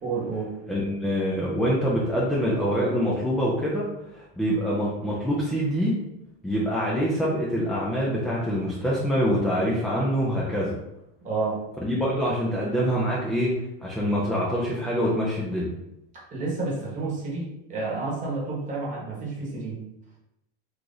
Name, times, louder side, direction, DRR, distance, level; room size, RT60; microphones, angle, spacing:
voice 1, 0.0-0.5 11.2-11.6 16.1-19.8, right 3 dB, 25° right, -3 dB, 1.1 m, -30 dB
voice 2, 0.7-3.9 4.1-6.0 6.4-10.8 11.8-13.5 13.8-15.7, equal, ahead, -6 dB, 0.4 m, -25 dB
3.0 x 2.4 x 3.8 m, 0.86 s
supercardioid pair, 145°, 30 cm